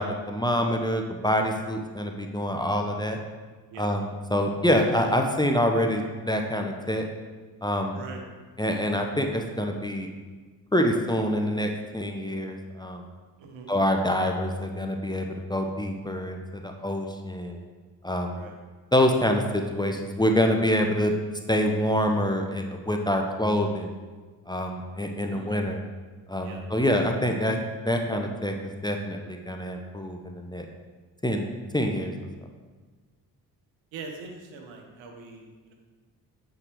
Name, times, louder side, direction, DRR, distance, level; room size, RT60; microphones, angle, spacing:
voice 1, 0.0-3.2 3.8-7.1 7.6-8.0 8.6-10.1 10.7-13.1 13.7-17.6 18.0-18.4 18.9-21.1 21.5-23.9 24.5-25.8 26.3-27.6 27.9-28.5 28.8-30.7 31.2-31.4 31.7-32.1, equal, 10° left, 2 dB, 0.9 m, -26 dB
voice 2, 7.9-8.2 13.4-13.7 18.3-18.6 25.3-25.6 26.4-26.6 33.9-35.7, right 4 dB, 65° right, 2 dB, 1.3 m, -42 dB
8.6 x 4.8 x 4.7 m, 1.4 s
hypercardioid pair, 40°, 49 cm